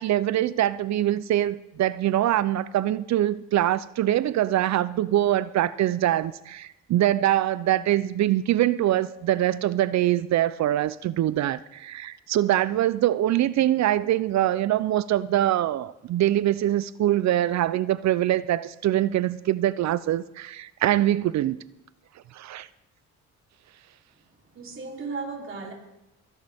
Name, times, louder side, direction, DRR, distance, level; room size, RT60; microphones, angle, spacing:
voice 1, 0.0-21.6 22.3-22.7, right 13 dB, 65° right, 0.5 m, -23 dB
voice 2, 24.5-25.7, right 4 dB, 45° right, 3.5 m, -35 dB
22.0 x 10.5 x 3.5 m
cardioid pair, 90°, 30 cm